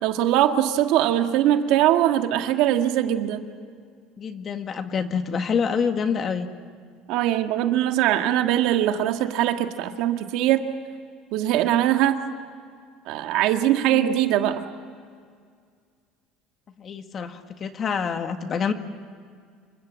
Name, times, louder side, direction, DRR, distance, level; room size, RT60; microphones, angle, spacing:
voice 1, 0.0-3.4 7.1-10.6 11.3-12.2 13.1-14.6, right 12 dB, 70° right, 6 dB, 1.7 m, -21 dB
voice 2, 4.2-6.5 13.9-14.1 16.8-18.7, left 6 dB, 35° left, 7 dB, 1.7 m, -27 dB
27.5 x 25.0 x 7.6 m, 2.1 s
cardioid pair, 135°, 0 cm